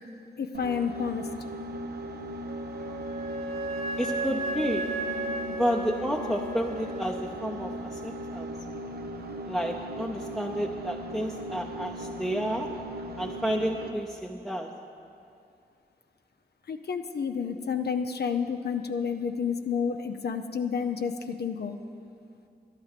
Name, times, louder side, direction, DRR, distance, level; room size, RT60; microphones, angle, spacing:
voice 1, 0.4-1.2 16.7-21.7, left 6 dB, 75° left, 6 dB, 0.6 m, -30 dB
sound 1, 0.5-14.1, equal, 70° right, 0.9 m, -38 dB
Wind instrument woodwind instrument, 2.5-7.1, right 2 dB, 45° right, 2.1 m, -34 dB
voice 2, 4.0-4.8 5.6-8.5 9.5-12.7 13.2-14.7, equal, ahead, 0 dB, 0.8 m, -31 dB
11.5 x 10.5 x 6.8 m, 2.6 s
cardioid pair, 55°, 17 cm